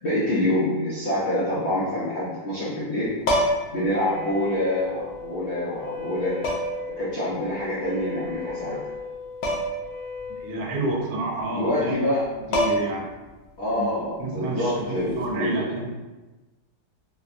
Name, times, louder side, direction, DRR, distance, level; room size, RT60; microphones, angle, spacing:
voice 1, 0.0-3.1 3.7-6.5 7.0-8.8 11.5-12.3 13.6-15.6, left 1 dB, 55° left, -10 dB, 0.8 m, -26 dB
sound 1, 3.2-3.8 5.1-5.2 6.4-6.9 9.4-9.9 10.2-10.3 12.1-12.2 12.5-13.1 15.1-15.3, equal, 85° left, 1.4 m, -25 dB
Wind instrument woodwind instrument, 3.8-10.5, left 4 dB, 25° right, 0.8 m, -37 dB
voice 2, 10.4-12.1 12.5-13.1 13.7-13.9 14.2-15.9, right 2 dB, 80° right, -2 dB, 1.3 m, -29 dB
4.4 x 2.2 x 2.5 m, 1.2 s
omnidirectional pair, 2.0 m